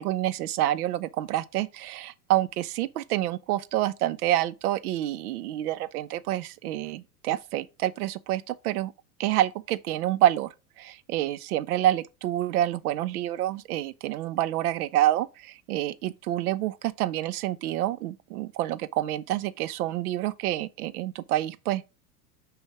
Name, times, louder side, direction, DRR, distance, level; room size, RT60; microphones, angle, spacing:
voice 1, 0.0-8.9 9.2-10.5 10.8-21.8, right 13 dB, 60° right, 0.7 m, -28 dB
6.2 x 3.3 x 4.7 m
hypercardioid pair, 100°, 50 cm